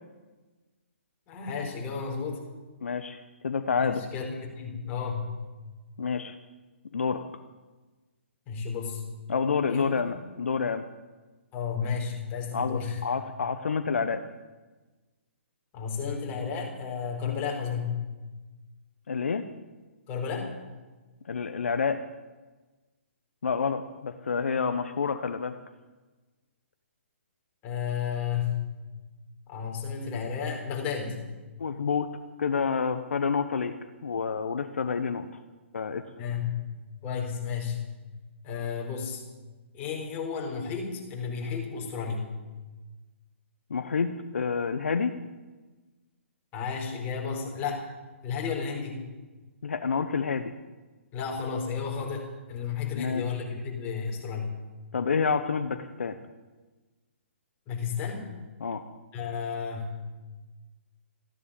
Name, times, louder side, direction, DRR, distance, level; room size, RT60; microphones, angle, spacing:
voice 1, 1.3-2.4 3.8-5.3 8.5-9.0 9.7-9.9 11.5-13.0 15.7-18.0 20.1-20.5 27.6-28.7 29.5-31.2 36.2-36.7 37.0-37.8 38.4-39.2 39.7-42.3 46.5-47.8 48.2-49.0 51.1-54.6 57.7-58.2 59.1-60.0, left 6 dB, 25° left, 0 dB, 4.4 m, -32 dB
voice 2, 2.8-4.0 6.0-6.3 6.9-7.2 9.3-10.9 12.5-14.2 17.2-17.4 19.1-19.5 21.3-22.0 23.4-25.5 31.6-32.1 32.4-33.7 34.0-35.3 35.7-36.0 43.7-45.1 49.6-50.5 53.0-53.2 54.9-56.2 58.6-58.8, left 5 dB, 70° left, 9 dB, 1.0 m, -28 dB
15.0 x 11.0 x 8.8 m, 1.2 s
hypercardioid pair, 135°, 7 cm